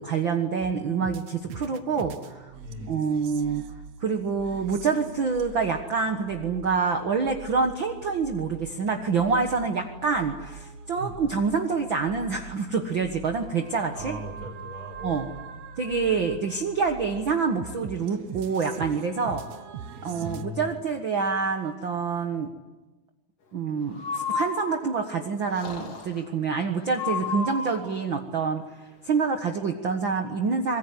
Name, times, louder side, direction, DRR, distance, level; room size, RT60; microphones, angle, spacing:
voice 1, 0.0-2.5 2.9-3.6 4.0-14.2 15.0-15.3 15.8-19.4 20.0-22.5 23.5-28.6 29.0-30.8, right 5 dB, 50° right, 5 dB, 1.8 m, -27 dB
sound 1, 0.6-20.4, right 6 dB, 65° right, 2.1 m, -43 dB
voice 2, 2.6-3.1 10.9-11.1 13.9-15.6 19.2-19.4 19.9-20.8, equal, 30° left, 4 dB, 5.7 m, -39 dB
Breathing, 23.9-25.1 25.5-26.2 26.9-28.0, left 5 dB, 50° left, 4.1 m, -32 dB
25.0 x 22.0 x 9.9 m, 1.1 s
omnidirectional pair, 3.5 m